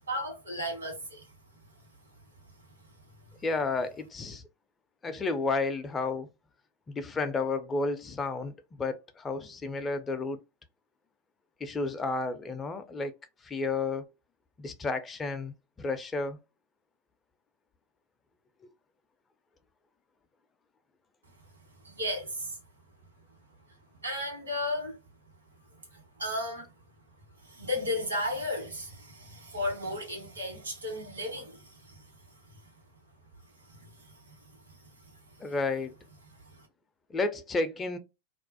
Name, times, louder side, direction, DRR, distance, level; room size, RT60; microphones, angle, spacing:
voice 1, 0.1-1.3 21.8-22.6 24.0-25.0 25.9-26.7 27.4-32.0 33.7-34.3 34.7-34.8 36.4-36.7, left 1 dB, 75° right, 1.2 m, -35 dB
voice 2, 3.4-4.4 5.0-6.3 6.9-8.5 8.8-10.4 11.6-13.1 13.4-14.0 14.6-16.4 35.4-35.9 37.1-38.0, left 3 dB, 20° left, 0.3 m, -31 dB
2.3 x 2.0 x 2.6 m
figure-of-eight pair, 90°, 0 cm